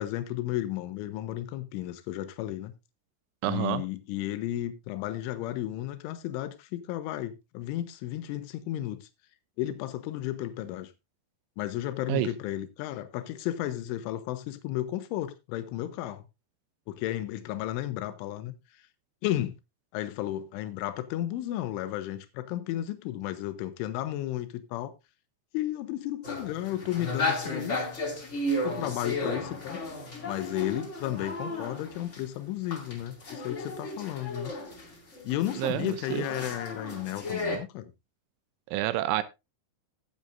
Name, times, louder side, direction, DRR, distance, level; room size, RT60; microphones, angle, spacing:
voice 1, 0.0-2.7 3.5-9.1 9.6-10.9 11.6-16.3 16.9-18.5 19.2-19.5 19.9-24.9 25.5-27.9 28.2-28.3 28.6-29.8 30.2-34.5 35.2-37.9, left 13 dB, 80° left, 3.4 m, -33 dB
voice 2, 3.4-3.8 12.1-12.3 35.6-36.3 38.7-39.2, right 15 dB, 80° right, 3.0 m, -28 dB
sound 1, 26.2-32.2 32.7-37.6, left 1 dB, 50° left, 0.8 m, -34 dB
17.5 x 7.8 x 2.5 m
omnidirectional pair, 5.6 m